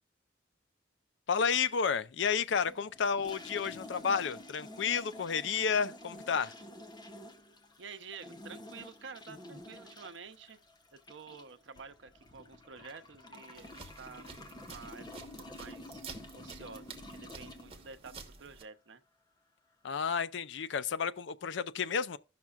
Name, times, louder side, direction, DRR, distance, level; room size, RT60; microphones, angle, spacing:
voice 1, 1.3-6.5 19.8-22.2, left 6 dB, 80° left, 0.5 m, -31 dB
sound 1, 2.5-18.4, left 1 dB, 25° left, 0.7 m, -50 dB
voice 2, 7.8-10.6 11.1-16.0 16.3-18.1 18.4-19.0, right 5 dB, 85° right, 0.7 m, -50 dB
sound 2, 13.5-18.6, right 4 dB, 35° right, 1.1 m, -50 dB
16.0 x 5.9 x 2.4 m
head